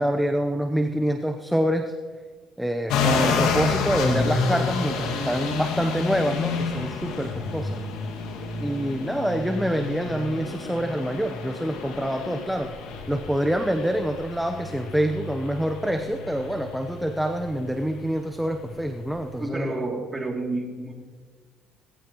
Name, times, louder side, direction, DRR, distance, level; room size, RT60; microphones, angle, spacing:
voice 1, 0.0-1.9 2.6-7.8 8.6-12.7 13.1-19.7, equal, 5° right, 5 dB, 0.8 m, -26 dB
sound 1, 2.9-19.4, left 4 dB, 85° left, 2.0 m, -30 dB
voice 2, 19.4-20.9, right 2 dB, 20° right, 1 dB, 2.7 m, -29 dB
18.5 x 16.5 x 3.0 m, 1.5 s
cardioid pair, 100°, 0 cm